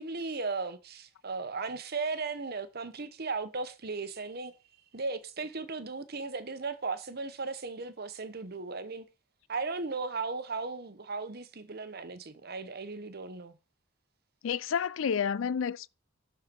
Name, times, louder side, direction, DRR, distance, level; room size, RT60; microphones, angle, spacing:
voice 1, 0.0-4.5 4.9-9.0 9.5-13.5, right 4 dB, 50° right, 1.0 m, -36 dB
voice 2, 14.4-15.9, left 7 dB, 65° left, 0.4 m, -30 dB
12.0 x 4.4 x 5.2 m
head